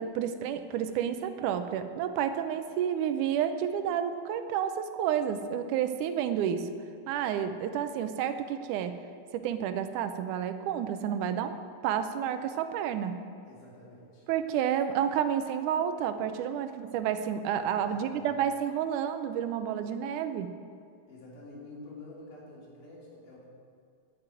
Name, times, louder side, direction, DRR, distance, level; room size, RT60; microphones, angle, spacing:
voice 1, 0.0-6.7 7.1-8.9 9.3-11.6 11.8-13.2 14.3-20.5, right 9 dB, 85° right, 9 dB, 2.2 m, -30 dB
voice 2, 13.5-14.3 16.7-16.8 17.9-18.4 21.1-23.5, left 2 dB, 85° left, -4 dB, 4.6 m, -48 dB
10.5 x 8.8 x 8.9 m, 2.3 s
omnidirectional pair, 3.6 m